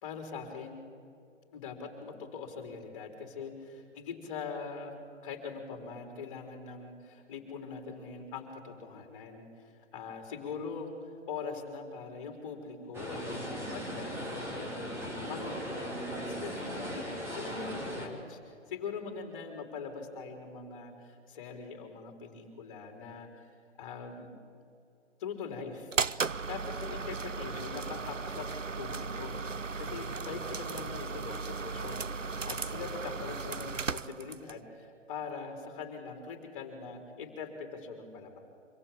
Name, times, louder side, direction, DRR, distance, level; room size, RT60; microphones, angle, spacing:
voice 1, 0.0-0.8 1.5-4.9 5.2-17.1 17.3-23.3 23.8-24.3 25.2-25.9 26.5-28.5 28.8-29.4 29.8-38.4, left 5 dB, 25° left, 4 dB, 4.1 m, -42 dB
sound 1, 12.9-18.1, equal, 5° right, 2.7 m, -38 dB
sound 2, 25.9-34.6, right 4 dB, 90° right, 0.8 m, -36 dB
25.5 x 24.0 x 8.7 m, 2.3 s
figure-of-eight pair, 140°, 37 cm